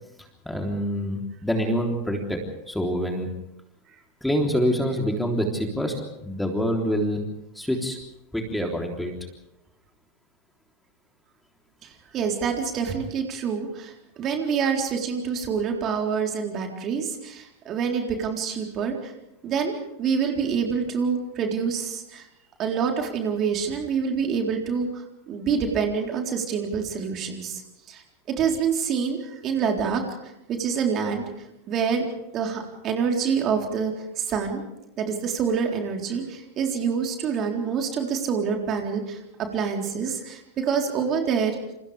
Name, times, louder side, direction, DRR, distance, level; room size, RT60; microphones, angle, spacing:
voice 1, 0.5-2.4 2.7-3.3 4.2-5.9 6.2-7.2 7.6-8.0 8.3-9.1, equal, 5° left, 2 dB, 3.5 m, -26 dB
voice 2, 11.8-19.1 19.4-19.7 20.0-22.3 22.6-27.6 27.9-31.3 31.7-32.1 32.3-34.6 35.0-41.6, right 6 dB, 30° right, 2 dB, 3.9 m, -26 dB
29.0 x 28.5 x 3.5 m, 0.87 s
figure-of-eight pair, 90°, 0 cm